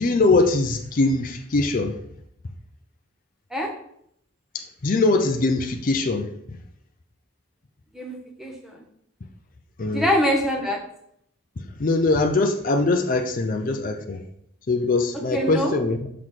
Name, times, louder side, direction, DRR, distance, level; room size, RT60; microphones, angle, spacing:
voice 1, 0.0-2.0 4.5-6.6 9.8-10.1 11.6-14.2 14.7-16.1, left 3 dB, 45° left, 3 dB, 0.5 m, -22 dB
voice 2, 7.9-8.8 9.9-10.8 15.3-15.7, equal, ahead, 0 dB, 1.1 m, -24 dB
5.9 x 5.8 x 3.2 m, 0.72 s
head